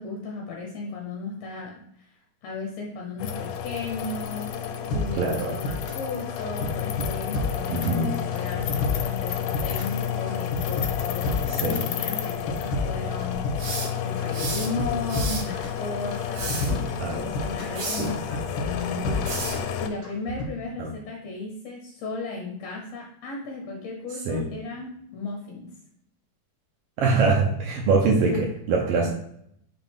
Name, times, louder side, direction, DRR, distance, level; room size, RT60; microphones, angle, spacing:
voice 1, 0.0-2.1 2.4-19.5 19.8-25.7 28.2-28.4, left 3 dB, 65° left, 0 dB, 1.8 m, -35 dB
sound 1, 3.2-19.9, left 8 dB, 85° left, 2.1 m, -31 dB
sound 2, 4.9-6.1 6.4-8.0 8.3-10.0 10.3-11.9 12.2-13.9 14.2-15.8 16.1-17.8 18.1-19.7 20.0-20.5, left 2 dB, 45° left, 2.2 m, -30 dB
voice 2, 5.1-5.5 7.7-8.2 11.5-11.8 16.7-17.3 18.0-18.1 20.8-20.9 24.3-24.4 27.0-29.1, right 3 dB, 85° right, -1 dB, 1.3 m, -24 dB
sound 3, 13.6-14.7 15.1-15.5 16.2-16.7 17.8-18.1 19.3-19.6, right 3 dB, 65° right, 2.7 m, -32 dB
5.8 x 4.6 x 3.5 m, 0.71 s
omnidirectional pair, 3.7 m